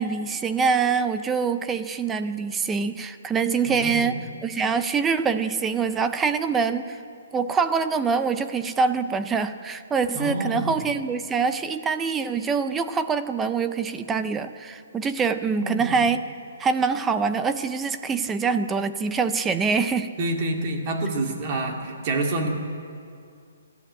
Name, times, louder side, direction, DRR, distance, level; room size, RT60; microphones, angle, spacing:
voice 1, 0.0-7.0 7.3-16.2 16.6-20.1, right 5 dB, 5° right, 10 dB, 0.5 m, -24 dB
voice 2, 3.7-4.2 10.1-10.8 15.6-16.0 20.2-22.5, right 2 dB, 25° right, 2 dB, 2.3 m, -28 dB
26.5 x 13.0 x 8.7 m, 2.3 s
hypercardioid pair, 180°, 0 cm